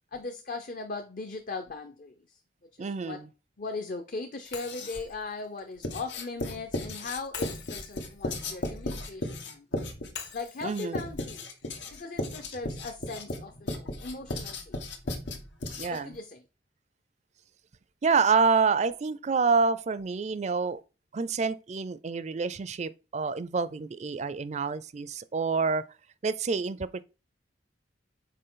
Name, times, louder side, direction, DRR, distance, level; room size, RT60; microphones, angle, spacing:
voice 1, 0.1-2.4 2.8-3.2 3.6-9.8 10.3-11.5 11.9-14.8 15.9-16.4, left 3 dB, 50° left, 0.7 m, -39 dB
voice 2, 2.8-3.3 10.6-11.0 15.8-16.2 18.0-20.8 21.1-25.8 26.2-27.0, right 5 dB, 40° right, 0.4 m, -27 dB
Writing, 4.5-5.2 5.8-16.2, left 2 dB, 85° left, 1.4 m, -36 dB
Shatter, 4.5-6.6 7.3-9.4 10.1-12.2, left 7 dB, 70° left, 1.5 m, -46 dB
6.6 x 4.6 x 3.8 m
head